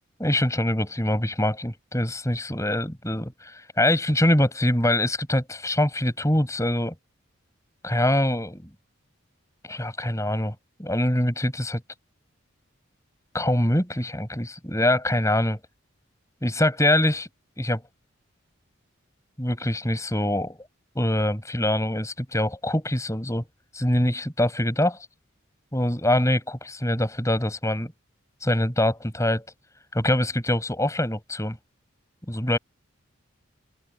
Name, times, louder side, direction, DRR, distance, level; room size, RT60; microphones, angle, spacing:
voice 1, 0.2-6.9 7.8-8.7 9.6-10.5 10.8-11.8 13.3-15.6 16.4-17.3 17.6-17.8 19.4-20.6 21.0-23.4 23.7-25.0 25.7-27.9 28.4-29.5 29.9-31.6 32.3-32.6, left 1 dB, 15° left, 7.6 m, -24 dB
open air
head